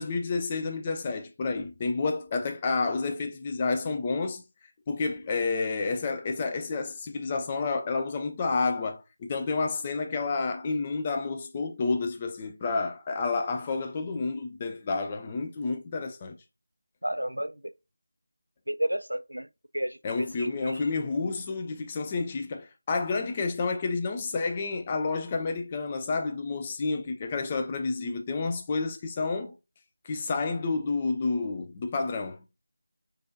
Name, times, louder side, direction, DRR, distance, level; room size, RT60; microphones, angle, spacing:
voice 1, 0.0-4.4 4.9-16.4 20.0-29.5 30.0-32.4, left 4 dB, 15° left, 0.3 m, -30 dB
voice 2, 17.0-17.6 18.7-19.5 19.7-20.8, right 1 dB, 80° right, 0.3 m, -32 dB
4.6 x 2.6 x 2.5 m
figure-of-eight pair, 165°, 0 cm